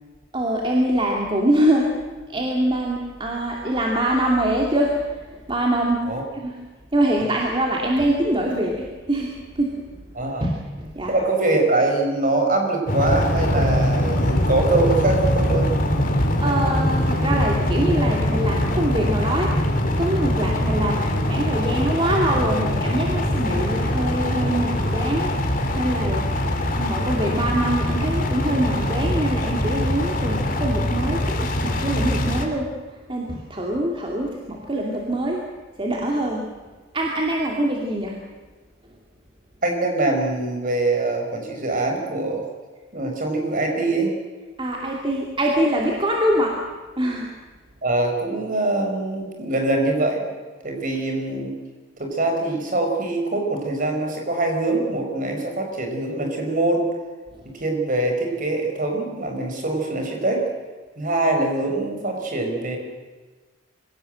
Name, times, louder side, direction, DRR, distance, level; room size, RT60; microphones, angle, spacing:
voice 1, 0.3-1.9 2.3-5.0 5.5-6.1 6.3-6.5 6.9-9.3 9.6-9.8 10.4-11.2 16.4-19.6 20.0-25.3 25.8-26.2 26.7-32.7 33.1-35.4 35.8-36.4 36.9-38.2 44.6-46.6 47.0-47.3, right 1 dB, 25° right, -1 dB, 2.4 m, -24 dB
voice 2, 10.1-10.5 11.1-15.7 39.6-42.4 42.9-44.1 47.8-50.2 50.6-51.5 52.0-56.8 57.5-60.4 61.0-62.8, right 2 dB, 45° right, 3 dB, 5.0 m, -23 dB
sound 1, 12.9-32.4, left 1 dB, 45° left, 2.8 m, -22 dB
25.0 x 17.0 x 7.8 m, 1.3 s
head